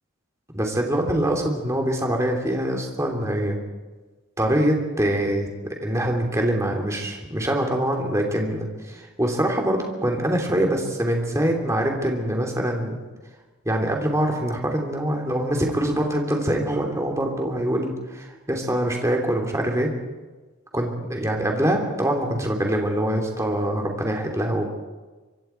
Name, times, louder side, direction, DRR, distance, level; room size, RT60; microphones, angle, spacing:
voice 1, 0.5-3.6 4.4-5.5 5.8-13.0 13.6-19.9 20.7-24.7, right 1 dB, 15° right, 1 dB, 3.0 m, -24 dB
25.0 x 24.5 x 4.6 m, 1.3 s
head